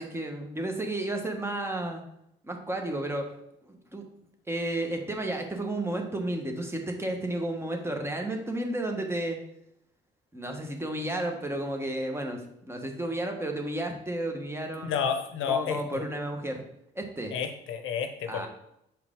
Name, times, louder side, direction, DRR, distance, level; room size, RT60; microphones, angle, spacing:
voice 1, 0.0-2.0 2.4-3.3 3.6-4.0 4.5-9.4 10.3-12.4 12.7-15.0 15.5-16.6 16.9-17.3 18.3-18.5, right 1 dB, 10° right, 3 dB, 1.3 m, -32 dB
voice 2, 14.8-16.0 17.3-18.5, left 7 dB, 85° left, 6 dB, 1.0 m, -30 dB
7.3 x 4.6 x 3.7 m, 0.76 s
cardioid pair, 90°, 20 cm